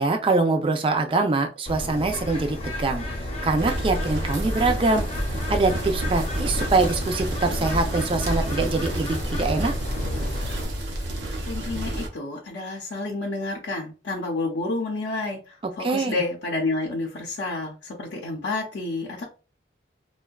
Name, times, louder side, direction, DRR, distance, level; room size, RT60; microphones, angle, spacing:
voice 1, 0.0-9.7 15.8-16.2, right 3 dB, 30° right, 0.3 m, -24 dB
Bird, 1.7-10.7, left 1 dB, 30° left, 0.6 m, -33 dB
sound 1, 3.6-12.1, right 1 dB, 80° right, 0.6 m, -29 dB
voice 2, 11.5-15.4 15.8-19.2, left 2 dB, 70° left, 0.5 m, -29 dB
2.5 x 2.1 x 2.2 m
head